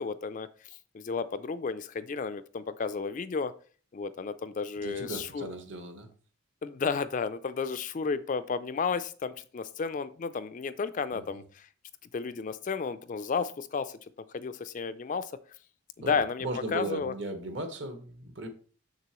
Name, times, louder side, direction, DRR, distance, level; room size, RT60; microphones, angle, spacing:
voice 1, 0.0-3.5 3.9-5.5 6.6-11.7 12.1-14.0 14.3-15.3 16.0-16.5 16.7-17.1, left 5 dB, 35° left, 12 dB, 0.3 m, -32 dB
voice 2, 4.8-6.1 11.1-11.4 16.0-18.5, right 2 dB, 55° right, 6 dB, 1.3 m, -37 dB
6.8 x 6.6 x 3.0 m, 0.41 s
head